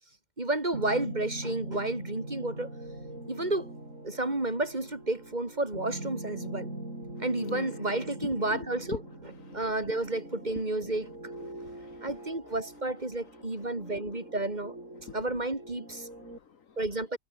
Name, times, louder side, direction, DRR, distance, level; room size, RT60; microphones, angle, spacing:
voice 1, 0.4-2.7 3.3-3.7 4.0-6.7 7.2-11.1 12.0-14.8 15.1-16.1 16.8-17.2, right 2 dB, 30° right, 4.0 m, -31 dB
sound 1, 0.7-16.4, right 1 dB, 70° right, 8.6 m, -43 dB
voice 2, 8.2-9.0 9.5-9.6 10.9-11.0 11.5-12.2 15.0-15.2 16.2-16.8, left 7 dB, 80° left, 1.8 m, -43 dB
omnidirectional pair, 1.4 m